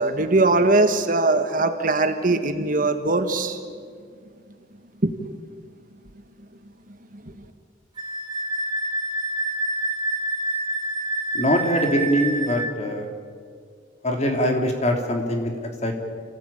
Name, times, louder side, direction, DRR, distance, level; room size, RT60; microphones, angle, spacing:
voice 1, 0.0-3.6 5.0-5.3 7.1-7.4, right 2 dB, 45° right, 7 dB, 1.5 m, -21 dB
Wind instrument woodwind instrument, 8.0-12.7, right 1 dB, 25° right, 2.5 m, -27 dB
voice 2, 11.3-13.1 14.0-16.0, equal, 35° left, 3 dB, 3.1 m, -23 dB
29.5 x 16.0 x 9.0 m, 2.1 s
head